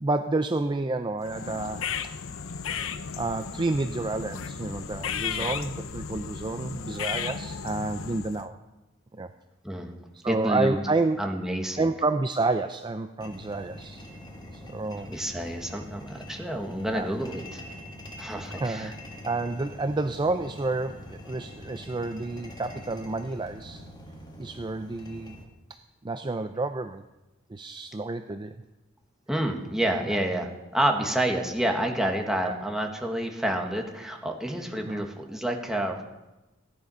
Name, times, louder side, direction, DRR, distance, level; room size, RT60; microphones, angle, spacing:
voice 1, 0.0-1.9 3.1-8.6 9.1-9.3 10.1-11.2 11.8-14.1 14.5-15.1 16.9-17.1 18.5-19.0 19.2-23.8 24.4-25.4 25.7-25.8 26.0-27.0 27.5-28.6 30.1-30.2 32.4-32.5 34.9-35.1, right 3 dB, 20° right, 9 dB, 0.4 m, -30 dB
sound 1, 1.2-8.5, left 6 dB, 75° left, 0.7 m, -34 dB
voice 2, 10.3-10.8 11.2-11.9 15.1-17.6 18.2-18.9 29.3-36.0, right 1 dB, 5° right, 2 dB, 1.6 m, -29 dB
sound 2, 13.2-25.4, left 1 dB, 20° left, 1.9 m, -44 dB
16.5 x 10.5 x 5.6 m, 1.0 s
head